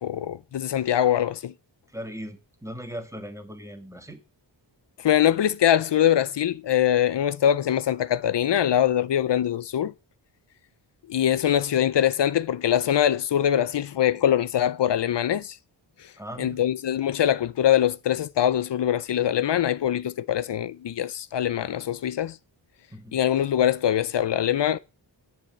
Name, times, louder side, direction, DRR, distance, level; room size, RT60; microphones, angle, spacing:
voice 1, 0.0-1.5 5.0-9.9 11.1-15.6 16.4-22.4 23.1-24.8, left 10 dB, 65° left, 0.6 m, -23 dB
voice 2, 1.9-4.2 16.2-16.6 22.9-23.2, equal, 5° right, 1.7 m, -38 dB
10.5 x 5.7 x 7.7 m
wide cardioid pair, 165°, 45 cm